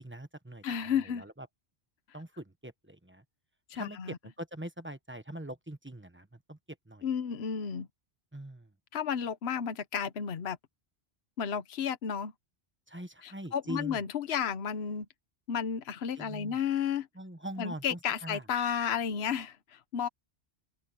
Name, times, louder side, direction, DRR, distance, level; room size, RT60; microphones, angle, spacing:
voice 1, 0.0-1.5 2.1-3.2 3.7-6.6 6.8-7.1 8.3-8.7 12.9-14.0 16.1-16.6 17.1-18.4, right 1 dB, 10° right, 1.1 m, -43 dB
voice 2, 0.6-1.2 3.7-4.2 7.0-7.9 8.9-10.6 11.4-12.3 13.2-15.0 15.5-17.1 17.6-20.1, left 7 dB, 70° left, 1.2 m, -32 dB
omnidirectional pair, 1.1 m